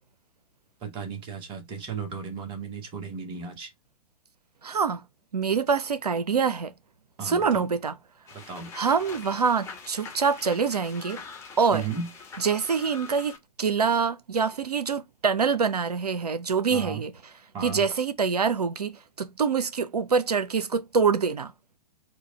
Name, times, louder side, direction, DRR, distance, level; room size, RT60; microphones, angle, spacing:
voice 1, 0.8-3.7 7.2-7.6 8.5-8.7 11.7-12.1 16.7-17.0 17.5-17.8, right 6 dB, 25° right, 1.2 m, -35 dB
voice 2, 4.6-5.0 5.3-6.7 7.2-8.0 8.7-11.2 11.6-11.8 12.4-17.1 17.6-21.5, right 5 dB, 75° right, 0.6 m, -25 dB
sound 1, 8.3-13.4, left 5 dB, 15° left, 1.2 m, -44 dB
4.5 x 2.3 x 4.1 m
figure-of-eight pair, 110°, 20 cm